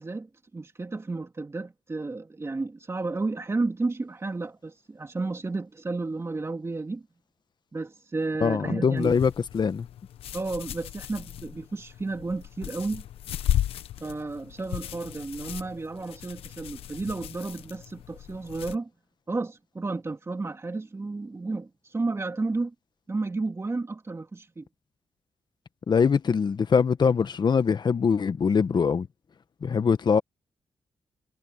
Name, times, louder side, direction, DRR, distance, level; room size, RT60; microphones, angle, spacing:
voice 1, 0.0-7.0 7.7-9.2 10.3-13.0 14.0-18.9 19.3-22.7 23.1-24.7, right 3 dB, 30° right, 3.2 m, -32 dB
voice 2, 8.4-9.9 25.9-29.1 29.6-30.2, left 6 dB, 50° left, 1.3 m, -23 dB
sound 1, 9.0-18.8, left 12 dB, 90° left, 1.1 m, -35 dB
cardioid pair, 70°, 9 cm